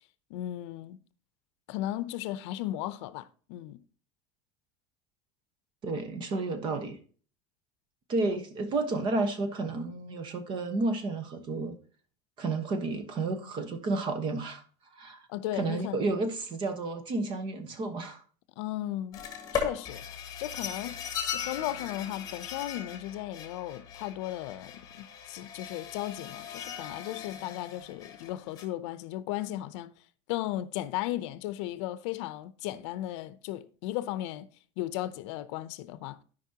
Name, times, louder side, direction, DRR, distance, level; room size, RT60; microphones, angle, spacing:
voice 1, 0.3-1.0 1.7-3.8 15.3-16.1 18.6-19.3 19.5-20.1 20.4-21.0 21.3-29.9 30.3-34.5 34.8-36.2, left 14 dB, 80° left, 0.6 m, -36 dB
voice 2, 5.8-7.0 8.1-11.7 12.4-14.6 14.9-15.3 15.5-18.2, right 3 dB, 35° right, 1.1 m, -31 dB
sound 1, 19.1-28.6, left 7 dB, 25° left, 1.5 m, -38 dB
13.0 x 5.2 x 2.8 m
cardioid pair, 170°, 15 cm